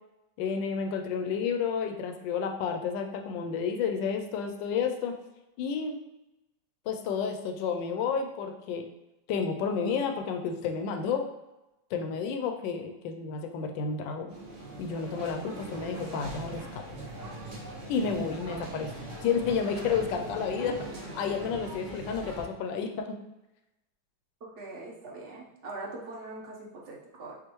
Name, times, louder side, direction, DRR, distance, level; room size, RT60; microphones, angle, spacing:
voice 1, 0.4-5.2 5.6-6.0 6.9-8.9 9.3-11.3 11.9-14.3 14.8-17.1 17.9-18.9 19.2-23.2, left 6 dB, 80° left, 5 dB, 1.3 m, -31 dB
sound 1, 14.3-22.4, right 1 dB, 65° right, 2.0 m, -41 dB
voice 2, 24.4-27.3, right 2 dB, 50° right, -3 dB, 0.7 m, -42 dB
6.2 x 2.6 x 3.0 m, 0.95 s
omnidirectional pair, 2.0 m